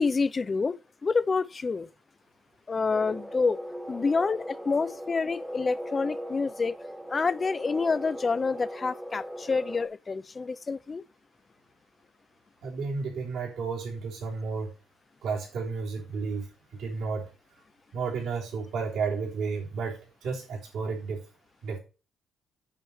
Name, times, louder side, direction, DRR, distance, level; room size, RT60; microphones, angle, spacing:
voice 1, 0.0-1.9 2.7-3.6 3.9-6.8 7.1-11.0, left 4 dB, 35° left, 0.5 m, -28 dB
sound 1, 2.9-9.9, equal, 5° right, 1.1 m, -39 dB
voice 2, 12.6-14.7 15.2-17.3 17.9-21.2 21.6-21.8, right 5 dB, 80° right, 3.6 m, -32 dB
8.8 x 6.9 x 4.4 m
cardioid pair, 90°, 0 cm